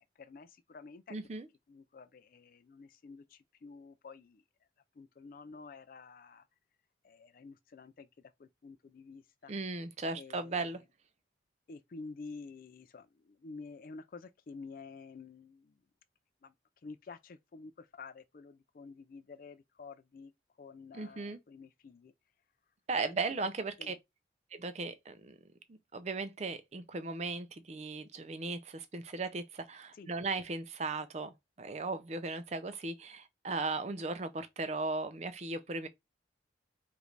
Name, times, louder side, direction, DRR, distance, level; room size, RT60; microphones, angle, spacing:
voice 1, 0.0-1.2 1.7-4.4 5.0-6.4 7.0-8.1 8.4-9.5 10.1-10.7 11.7-15.8 16.4-16.5 16.8-20.3 20.6-22.1 23.0-23.2 23.8-24.0 29.9-30.1, left 4 dB, 50° left, 0.3 m, -50 dB
voice 2, 1.1-1.5 9.5-10.8 20.9-21.4 22.9-23.9 24.5-25.4 25.7-35.9, right 3 dB, 35° right, 0.5 m, -37 dB
5.0 x 2.5 x 3.2 m
head